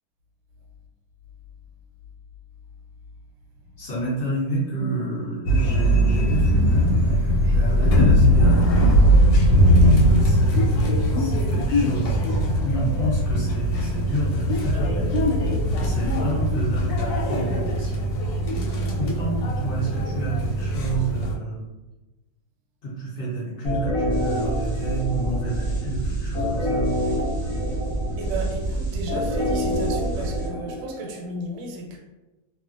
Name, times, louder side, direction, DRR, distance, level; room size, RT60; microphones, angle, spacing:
voice 1, 3.8-8.6 9.0-9.1 9.5-12.2 12.6-15.1 15.8-18.0 19.0-21.6 22.8-26.9, right 2 dB, 65° left, -6 dB, 0.5 m, -29 dB
sound 1, 5.5-21.3, equal, 90° left, 1.3 m, -20 dB
sound 2, 23.6-31.3, equal, ahead, 0.8 m, -26 dB
voice 2, 28.2-32.0, right 1 dB, 75° right, 0 dB, 1.2 m, -34 dB
2.7 x 2.4 x 2.4 m, 1.1 s
omnidirectional pair, 1.9 m